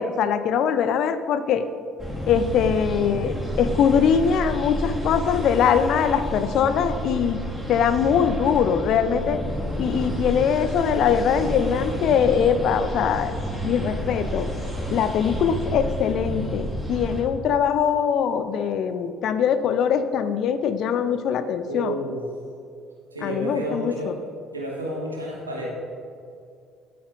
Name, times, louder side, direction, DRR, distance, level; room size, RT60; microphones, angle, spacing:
voice 1, 0.0-1.7 2.3-7.4 7.7-9.4 9.8-13.3 13.6-14.5 14.9-22.0 23.2-24.1, left 7 dB, 55° left, 11 dB, 0.5 m, -22 dB
sound 1, 2.0-17.2, equal, ahead, 1.8 m, -30 dB
voice 2, 21.6-22.2 23.1-24.1 24.5-25.7, right 1 dB, 90° right, -3 dB, 1.3 m, -30 dB
12.0 x 5.9 x 2.5 m, 2.5 s
figure-of-eight pair, 55°, 0 cm